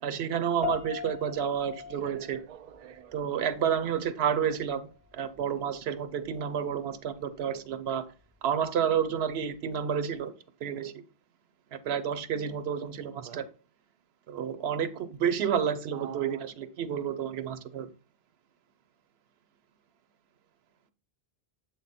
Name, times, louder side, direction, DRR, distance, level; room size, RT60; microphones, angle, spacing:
voice 1, 0.0-2.4 3.1-4.9 5.1-8.1 8.4-10.3 10.6-11.0 11.7-13.4 14.3-17.9, right 8 dB, 85° right, 0.9 m, -30 dB
sound 1, 0.6-10.2, left 6 dB, 10° right, 0.6 m, -43 dB
voice 2, 2.0-3.2 13.2-13.4 15.9-16.4, right 9 dB, 50° right, 0.5 m, -47 dB
7.8 x 3.8 x 4.1 m
omnidirectional pair, 1.0 m